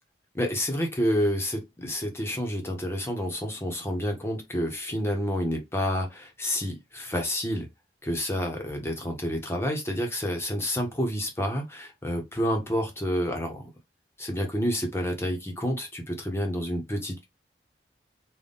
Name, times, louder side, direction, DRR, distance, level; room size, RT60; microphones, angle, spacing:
voice 1, 0.3-7.7 8.0-13.7 14.2-17.2, equal, 15° left, 1.1 m, -29 dB
4.0 x 2.6 x 3.6 m
head